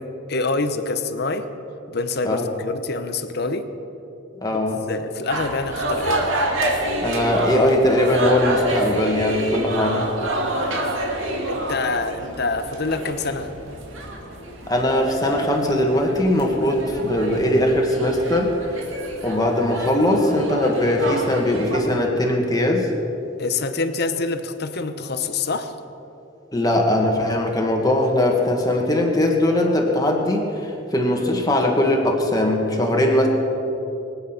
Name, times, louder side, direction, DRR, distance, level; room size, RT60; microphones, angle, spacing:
voice 1, 0.0-1.5 1.9-3.7 4.5-4.6 4.9-6.5 10.5-10.9 11.5-13.5 23.4-25.8, left 3 dB, 55° left, 9 dB, 0.9 m, -26 dB
voice 2, 4.4-4.8 7.0-10.1 14.7-18.9 19.2-22.9 26.5-33.3, left 1 dB, 20° left, 1 dB, 1.9 m, -20 dB
sound 1, 5.3-21.8, right 1 dB, 90° right, 2.4 m, -28 dB
24.5 x 8.9 x 5.9 m, 2.9 s
head